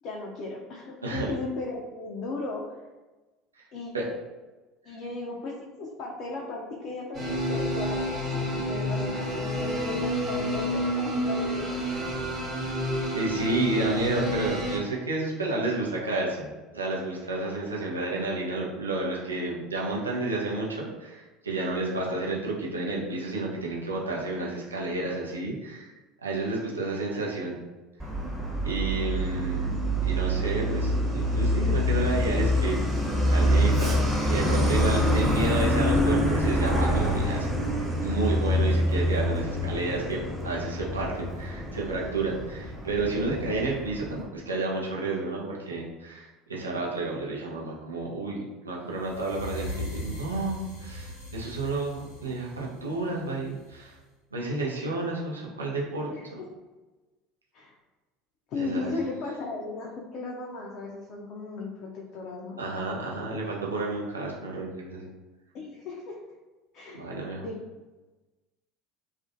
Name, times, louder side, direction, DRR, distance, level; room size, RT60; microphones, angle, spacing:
voice 1, 0.0-2.8 3.7-3.9 4.8-12.3 56.1-56.3 57.5-57.7 58.5-62.6 65.5-66.2 66.7-67.0 67.4-67.6, left 3 dB, 50° left, -3 dB, 0.4 m, -36 dB
sound 1, 7.1-14.8, equal, 40° right, 0.9 m, -29 dB
voice 2, 13.1-25.9 26.2-27.6 28.6-29.7 30.0-37.5 38.0-40.2 40.4-54.0 54.3-56.1 58.6-58.9 62.6-65.1 66.9-67.5, right 2 dB, 85° right, -3 dB, 0.5 m, -31 dB
Truck, 28.0-44.2, equal, 10° right, 0.8 m, -26 dB
sound 2, 49.0-54.0, equal, 75° left, 0.8 m, -39 dB
2.4 x 2.1 x 2.5 m, 1.2 s
figure-of-eight pair, 70°, 0 cm